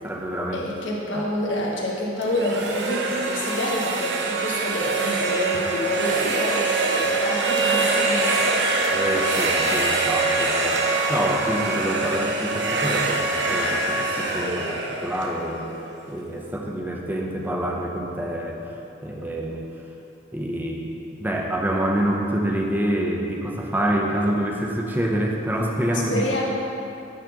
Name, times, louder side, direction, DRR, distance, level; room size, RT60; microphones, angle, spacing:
voice 1, 0.0-0.6 1.1-1.2 8.9-10.8 11.1-15.7 16.1-18.7 19.0-19.7 20.3-26.3, right 1 dB, 10° right, 0 dB, 0.7 m, -26 dB
voice 2, 0.5-8.6 26.1-26.4, left 1 dB, 75° left, -4 dB, 1.5 m, -27 dB
sound 1, 2.2-16.1, right 3 dB, 60° right, 0.7 m, -24 dB
9.4 x 4.3 x 5.8 m, 2.8 s
head